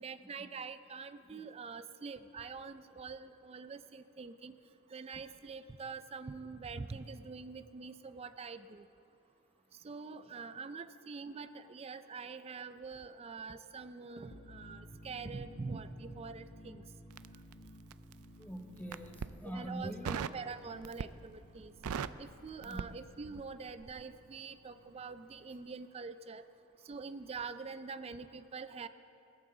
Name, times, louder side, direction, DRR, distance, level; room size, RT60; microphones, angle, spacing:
voice 1, 0.0-4.5 4.9-8.8 9.8-16.8 19.4-21.7 22.2-26.4 26.9-28.9, right 4 dB, 25° right, 12 dB, 0.4 m, -45 dB
sound 1, 14.3-25.7, equal, 45° left, 0.9 m, -56 dB
Crackle, 17.1-18.2 18.8-19.4 20.0-20.4 20.8-21.3 21.6-23.5 23.8-24.0, right 6 dB, 90° right, 0.4 m, -40 dB
voice 2, 18.4-20.2 22.6-22.8, right 1 dB, 10° left, 4 dB, 0.9 m, -44 dB
20.5 x 14.5 x 3.9 m, 2.7 s
head